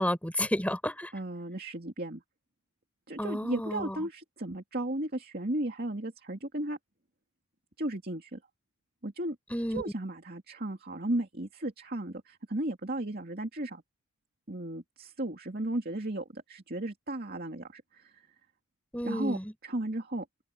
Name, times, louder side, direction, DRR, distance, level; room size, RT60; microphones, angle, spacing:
voice 1, 0.0-1.1 3.2-4.0 9.5-9.8 18.9-19.5, left 1 dB, 5° left, 6.5 m, -31 dB
voice 2, 1.1-2.2 3.1-6.8 7.8-8.4 9.0-9.4 9.7-13.8 14.5-18.2 19.0-19.4 19.6-20.3, right 1 dB, 45° right, 2.5 m, -35 dB
open air
head